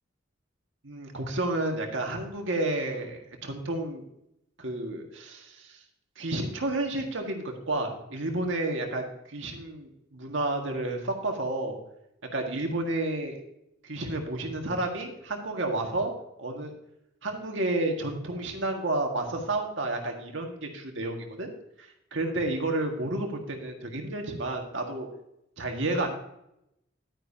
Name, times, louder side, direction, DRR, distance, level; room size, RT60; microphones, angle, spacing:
voice 1, 0.8-4.0 4.6-5.8 6.2-11.8 12.3-13.4 13.8-16.1 16.4-16.7 17.2-21.5 21.8-25.1 25.6-26.2, right 2 dB, 70° right, 2 dB, 1.8 m, -31 dB
11.0 x 9.8 x 2.8 m, 0.81 s
head